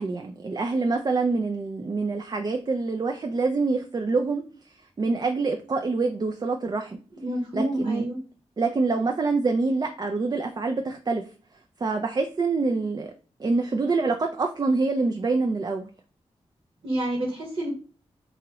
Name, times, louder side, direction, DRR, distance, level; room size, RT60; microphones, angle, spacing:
voice 1, 0.0-4.4 5.0-7.0 7.5-8.1 8.6-11.2 11.8-13.1 13.4-15.9, right 3 dB, 35° right, 4 dB, 0.4 m, -26 dB
voice 2, 7.2-8.2 16.8-17.7, right 1 dB, 65° right, -3 dB, 1.2 m, -28 dB
2.9 x 2.3 x 2.9 m, 0.38 s
cardioid pair, 40°, 12 cm